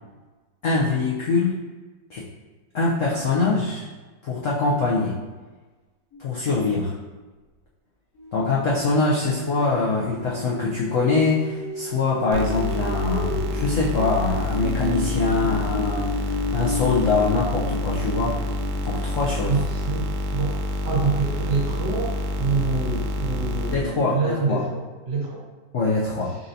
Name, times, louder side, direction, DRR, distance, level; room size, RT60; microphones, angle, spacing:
voice 1, 0.6-1.6 2.1-2.3 2.7-3.9 4.2-5.2 6.2-7.0 8.3-19.6 23.7-24.6 25.7-26.4, left 3 dB, 70° left, -5 dB, 0.7 m, -23 dB
sound 1, 6.1-6.3 8.2-19.2, left 3 dB, 55° left, 1.3 m, -33 dB
sound 2, 12.3-23.8, left 1 dB, 85° right, 1.3 m, -28 dB
voice 2, 19.5-20.5 20.8-25.4, right 4 dB, 65° right, -5 dB, 1.8 m, -26 dB
4.3 x 3.9 x 2.7 m, 1.3 s
omnidirectional pair, 2.1 m